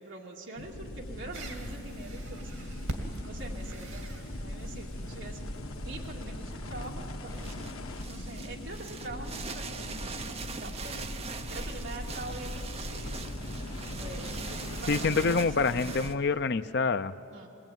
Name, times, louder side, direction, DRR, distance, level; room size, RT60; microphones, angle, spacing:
voice 1, 0.0-2.8 3.2-5.5 5.8-7.7 8.0-11.0 11.5-13.2 14.0-16.0 17.3-17.5, right 2 dB, 60° right, -1 dB, 2.3 m, -44 dB
sound 1, 0.6-16.2, left 1 dB, 80° left, 1.3 m, -39 dB
sound 2, 1.3-7.6, right 1 dB, 80° right, 2.4 m, -45 dB
sound 3, 7.2-16.1, right 5 dB, 30° right, 0.7 m, -42 dB
voice 2, 14.9-17.1, left 4 dB, 50° left, 12 dB, 0.6 m, -26 dB
21.5 x 20.0 x 9.2 m, 3.0 s
head